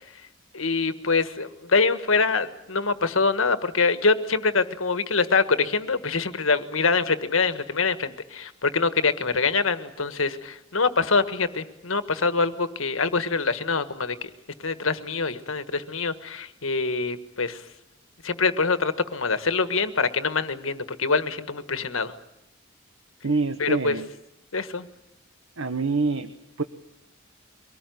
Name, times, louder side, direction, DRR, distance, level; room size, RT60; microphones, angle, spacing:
voice 1, 0.5-14.3 14.6-17.6 18.2-22.1 23.6-24.0 24.5-24.9, left 4 dB, 80° left, 11 dB, 1.5 m, -24 dB
voice 2, 23.2-24.1 25.6-26.6, right 3 dB, 80° right, 9 dB, 1.1 m, -26 dB
24.0 x 19.0 x 9.4 m, 0.87 s
head